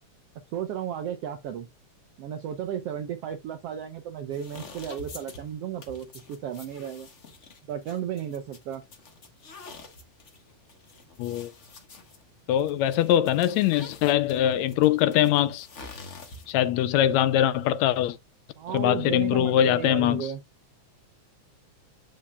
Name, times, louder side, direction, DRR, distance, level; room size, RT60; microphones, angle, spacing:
voice 1, 0.5-1.7 2.2-7.1 7.7-8.8 18.6-20.4, right 9 dB, 75° right, 1.4 m, -34 dB
sound 1, 4.3-16.7, left 3 dB, 60° left, 0.7 m, -47 dB
voice 2, 11.2-11.5 12.5-15.7 16.5-18.2 18.7-20.3, left 11 dB, 75° left, 1.7 m, -22 dB
9.8 x 6.4 x 2.3 m
omnidirectional pair, 3.5 m